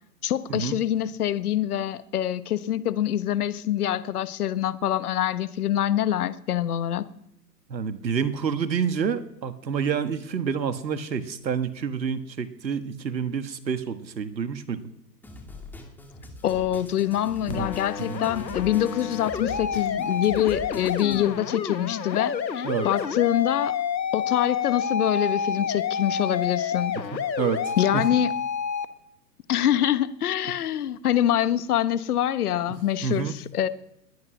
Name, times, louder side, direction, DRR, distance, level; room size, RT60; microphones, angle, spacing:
voice 1, 0.2-7.0 16.4-23.7 24.1-27.0 27.8-28.3 29.5-33.7, left 11 dB, 60° left, 14 dB, 1.3 m, -25 dB
voice 2, 7.7-14.8 17.5-17.7 18.1-18.2 22.6-22.9 27.1-28.0 32.7-32.8 33.0-33.3, right 7 dB, 85° right, 11 dB, 1.5 m, -28 dB
sound 1, 15.2-21.2, left 2 dB, 5° left, 2.1 m, -43 dB
sound 2, 17.5-28.9, left 7 dB, 90° left, 1.4 m, -29 dB
20.5 x 9.8 x 6.1 m, 0.81 s
hypercardioid pair, 125°, 50 cm